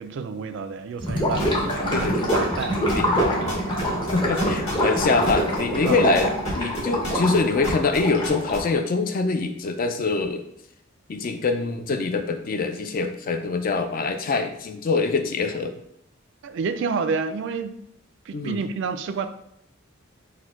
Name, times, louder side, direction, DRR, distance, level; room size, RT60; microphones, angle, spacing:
voice 1, 0.0-2.9 3.3-3.6 5.9-6.0 16.4-17.8 18.3-19.3, right 5 dB, 60° right, 10 dB, 0.3 m, -30 dB
Gurgling / Liquid, 1.0-8.7, equal, 25° left, 0.8 m, -25 dB
sound 1, 1.4-1.7 2.0-2.6 2.9-8.6, left 1 dB, 80° left, 1.5 m, -33 dB
voice 2, 1.9-2.2 2.9-3.1 4.1-10.5 11.1-15.7 18.3-18.6, left 4 dB, 45° left, 7 dB, 0.4 m, -24 dB
4.3 x 2.1 x 4.4 m, 0.74 s
head